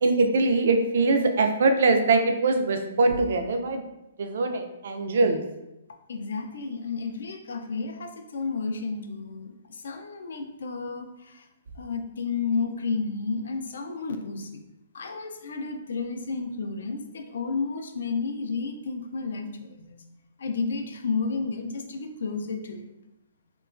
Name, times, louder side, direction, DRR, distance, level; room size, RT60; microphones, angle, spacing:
voice 1, 0.0-3.9 4.2-5.4, right 3 dB, 65° right, 6 dB, 0.3 m, -22 dB
voice 2, 6.1-11.5 11.8-14.6 14.9-20.0 20.4-22.8, left 4 dB, 80° left, 5 dB, 0.4 m, -32 dB
2.9 x 2.2 x 2.4 m, 0.93 s
hypercardioid pair, 160°, 0 cm